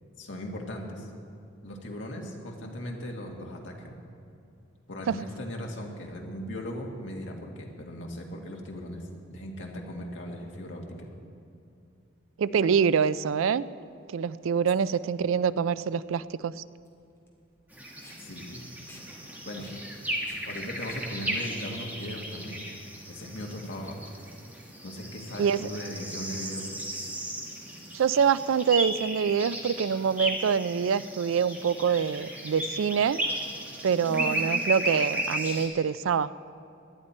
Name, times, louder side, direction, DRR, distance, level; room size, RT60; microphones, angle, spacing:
voice 1, 0.2-1.1 1.6-4.0 4.9-11.1 18.2-18.6 19.4-19.7 20.5-22.6 23.1-24.0 24.8-26.7, equal, 70° left, 0 dB, 1.8 m, -38 dB
voice 2, 12.4-13.7 14.1-16.6 25.4-25.6 27.9-33.2 33.8-36.3, right 7 dB, 85° right, 17 dB, 0.4 m, -25 dB
Packing tape duct tape, 15.3-22.7, left 2 dB, 10° left, 1.8 m, -55 dB
sound 1, 17.7-35.7, right 1 dB, 10° right, 1.4 m, -35 dB
18.0 x 11.5 x 4.3 m, 2.6 s
head